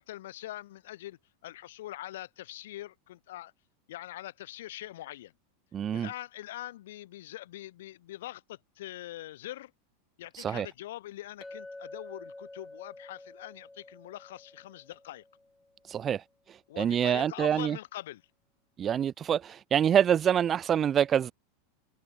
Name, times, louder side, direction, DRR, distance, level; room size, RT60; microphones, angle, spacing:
voice 1, 0.0-3.5 3.9-5.3 5.9-9.7 10.2-15.2 16.7-18.2, left 14 dB, 75° left, 7.8 m, -43 dB
voice 2, 5.7-6.1 10.3-10.7 15.8-17.8 18.8-21.3, right 9 dB, 25° right, 0.4 m, -26 dB
Chink clink, 11.4-15.9, left 2 dB, 5° left, 2.9 m, -48 dB
supercardioid pair, 150°, 0 cm